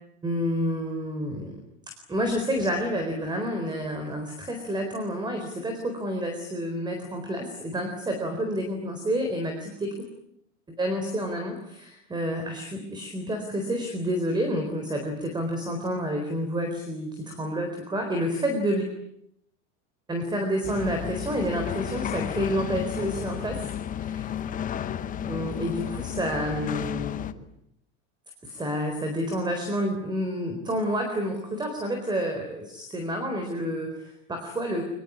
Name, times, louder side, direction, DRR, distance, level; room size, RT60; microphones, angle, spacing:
voice 1, 0.2-1.6 2.1-9.9 10.8-18.8 20.1-23.6 24.0-24.3 25.3-27.3 28.4-34.8, equal, 10° right, 5 dB, 4.0 m, -29 dB
sound 1, 20.6-27.3, left 9 dB, 20° left, 1.0 m, -32 dB
24.0 x 21.5 x 9.9 m, 0.76 s
supercardioid pair, 155°, 36 cm